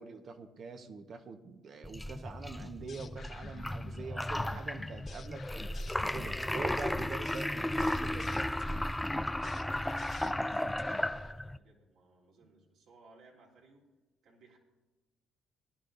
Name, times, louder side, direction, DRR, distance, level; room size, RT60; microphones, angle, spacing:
voice 1, 0.0-5.5 6.0-8.4 12.4-12.5, right 4 dB, 50° right, 7 dB, 1.3 m, -44 dB
sound 1, 1.8-11.6, left 1 dB, 10° left, 0.4 m, -34 dB
sound 2, 2.6-11.3, left 6 dB, 50° left, 1.2 m, -52 dB
voice 2, 9.2-13.9 14.2-14.6, right 3 dB, 70° right, -2 dB, 3.5 m, -61 dB
19.5 x 11.5 x 2.7 m, 1.1 s
supercardioid pair, 65°, 0 cm